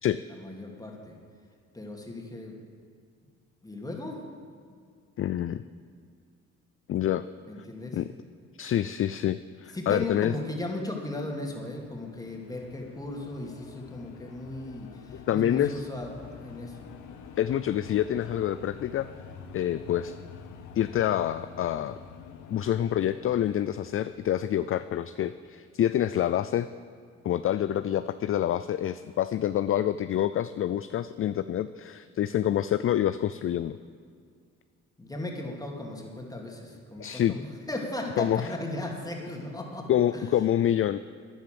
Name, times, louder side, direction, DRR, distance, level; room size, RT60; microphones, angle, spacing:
voice 1, 0.3-1.2 1.7-2.6 3.6-4.2 4.7-4.8 7.5-8.0 9.7-16.8 35.0-40.2, left 2 dB, 10° left, 0 dB, 2.5 m, -36 dB
voice 2, 5.2-5.6 6.9-7.2 7.9-8.1 8.6-10.3 15.3-15.8 17.4-19.1 19.5-20.1 20.8-22.0 22.5-26.7 27.2-33.8 37.0-37.4 38.2-38.5 39.9-41.0, left 11 dB, 45° left, 13 dB, 0.4 m, -27 dB
sound 1, 11.6-25.6, left 6 dB, 90° left, 1.1 m, -48 dB
12.0 x 10.5 x 7.7 m, 2.2 s
cardioid pair, 90°, 30 cm